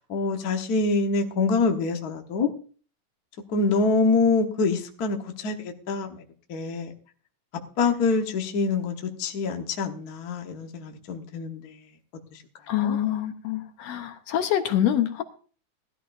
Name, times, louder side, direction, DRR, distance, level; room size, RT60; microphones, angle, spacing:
voice 1, 0.1-2.5 3.5-6.2 6.5-6.9 7.8-11.8 12.3-12.4 12.8-13.0, left 4 dB, 50° left, 3 dB, 1.1 m, -25 dB
voice 2, 12.7-15.2, left 11 dB, 70° left, 7 dB, 1.9 m, -25 dB
18.5 x 12.5 x 2.6 m, 0.40 s
omnidirectional pair, 3.5 m